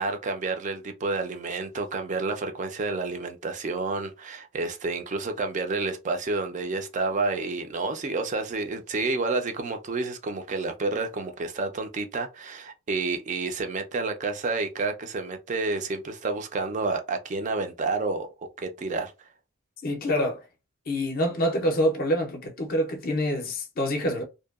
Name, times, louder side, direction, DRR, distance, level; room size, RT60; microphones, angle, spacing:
voice 1, 0.0-18.3 18.6-19.3, right 3 dB, 35° right, 0.3 m, -29 dB
voice 2, 19.8-20.4 20.9-24.2, equal, 40° left, 0.5 m, -26 dB
2.7 x 2.2 x 2.3 m
head